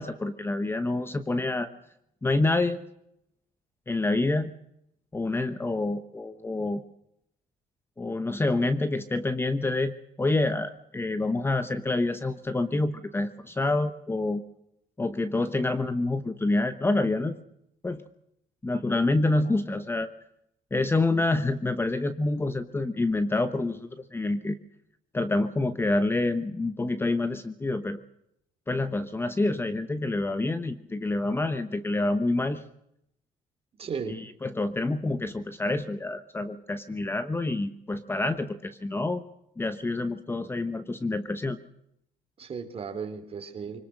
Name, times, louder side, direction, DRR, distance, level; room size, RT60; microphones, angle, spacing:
voice 1, 0.0-1.7 2.2-2.8 3.9-4.5 5.1-6.8 8.0-14.4 15.0-17.4 17.8-18.0 18.6-20.1 20.7-24.6 25.1-28.0 28.7-32.6 34.1-39.2 39.6-41.6, left 2 dB, 15° left, 11 dB, 1.0 m, -27 dB
voice 2, 19.2-19.6 33.8-34.2 42.4-43.8, right 6 dB, 40° right, 7 dB, 3.3 m, -36 dB
25.0 x 19.0 x 6.6 m, 0.77 s
cardioid pair, 140°, 16 cm